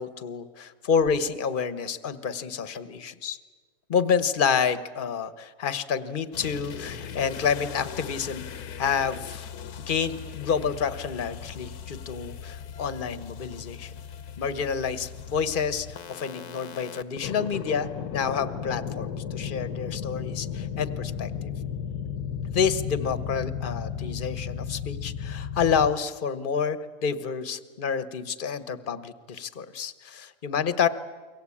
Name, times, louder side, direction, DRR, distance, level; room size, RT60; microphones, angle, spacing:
voice 1, 0.0-3.4 3.9-8.5 8.8-9.5 9.9-13.9 14.4-21.5 22.5-30.9, left 6 dB, 35° left, 12 dB, 1.2 m, -28 dB
Exploaded Phrase, 6.3-25.9, left 8 dB, 75° left, 1.5 m, -36 dB
29.5 x 23.5 x 8.6 m, 1.4 s
omnidirectional pair, 1.7 m